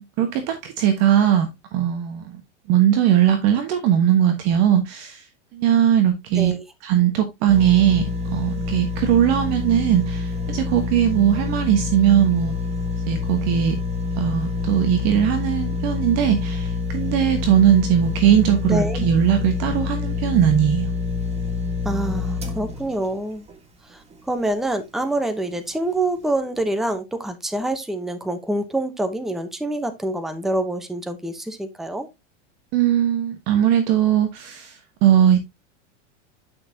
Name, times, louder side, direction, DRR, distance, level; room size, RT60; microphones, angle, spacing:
voice 1, 0.0-2.4 2.7-5.2 5.5-6.5 6.8-12.5 13.1-13.8 14.2-20.9 32.7-35.4, right 10 dB, 45° right, 1.3 m, -19 dB
sound 1, 7.5-24.7 25.2-25.3, left 4 dB, 15° right, 1.4 m, -27 dB
voice 2, 18.7-19.1 21.8-23.4 23.8-32.1, right 1 dB, ahead, 0.8 m, -26 dB
9.6 x 5.9 x 2.8 m
supercardioid pair, 140°, 37 cm